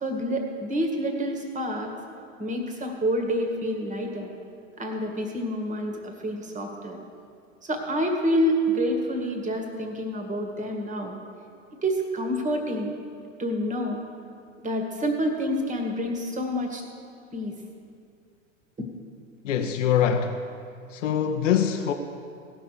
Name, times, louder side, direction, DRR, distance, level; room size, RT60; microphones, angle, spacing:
voice 1, 0.0-1.9 2.4-4.3 4.8-7.0 7.6-11.2 11.8-12.9 13.4-14.0 14.6-16.8 17.3-17.5 18.8-18.9, equal, 20° right, 3 dB, 2.0 m, -28 dB
voice 2, 19.4-20.4 20.9-21.9, left 8 dB, 70° left, 5 dB, 0.9 m, -23 dB
17.0 x 6.2 x 6.7 m, 2.3 s
hypercardioid pair, 90°, 38 cm